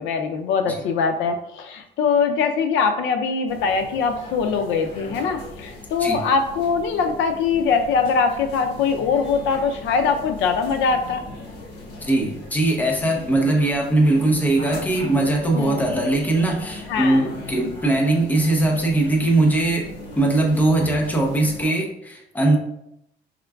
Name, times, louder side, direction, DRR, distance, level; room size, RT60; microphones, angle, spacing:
voice 1, 0.0-11.2 15.5-15.9 16.9-17.3, left 5 dB, 85° left, 6 dB, 0.5 m, -22 dB
sound 1, 3.5-21.6, left 2 dB, 70° left, 1.5 m, -39 dB
voice 2, 12.0-19.9 20.2-22.6, right 2 dB, 10° left, 0 dB, 0.6 m, -20 dB
4.4 x 3.6 x 2.3 m, 0.81 s
cardioid pair, 155°, 19 cm